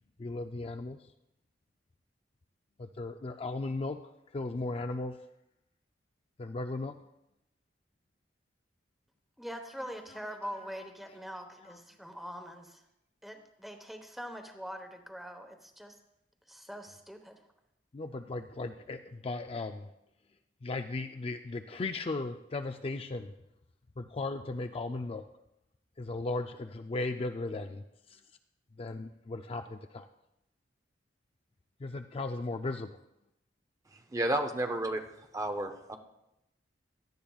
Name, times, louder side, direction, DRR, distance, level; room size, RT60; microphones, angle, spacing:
voice 1, 0.2-1.0 2.8-4.0 4.3-5.2 6.4-6.9 11.7-11.8 17.9-19.9 20.6-23.3 24.0-25.3 26.0-28.2 28.8-30.1 31.8-33.0, left 2 dB, 30° left, 7 dB, 0.4 m, -36 dB
voice 2, 9.4-12.8 13.2-16.0 16.5-17.4, equal, ahead, 5 dB, 1.0 m, -43 dB
voice 3, 34.1-35.0 35.3-36.0, right 1 dB, 20° right, 5 dB, 0.7 m, -31 dB
17.0 x 12.0 x 2.4 m, 0.86 s
head